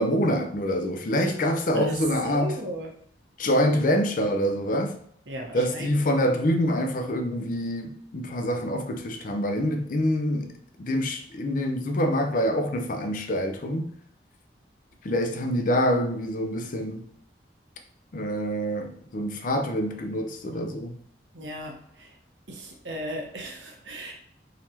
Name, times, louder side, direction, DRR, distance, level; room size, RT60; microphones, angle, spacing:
voice 1, 0.0-2.6 3.4-5.0 5.5-13.9 15.0-17.1 18.1-21.0, equal, 50° left, 0.5 m, -26 dB
voice 2, 2.2-2.9 5.3-6.0 21.3-22.1 22.5-24.1, equal, 85° right, 0.9 m, -36 dB
4.0 x 3.0 x 2.8 m
head